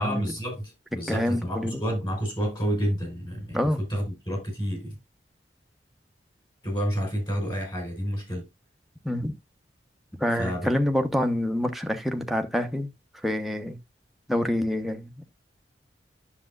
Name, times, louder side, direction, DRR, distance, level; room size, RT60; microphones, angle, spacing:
voice 1, 0.0-5.0 6.6-8.5 10.4-10.7, equal, 25° left, 5.0 m, -29 dB
voice 2, 1.1-1.7 3.5-3.8 9.0-9.4 10.2-12.9 13.2-13.8 14.3-15.2, left 1 dB, ahead, 0.9 m, -26 dB
10.0 x 6.8 x 2.4 m
head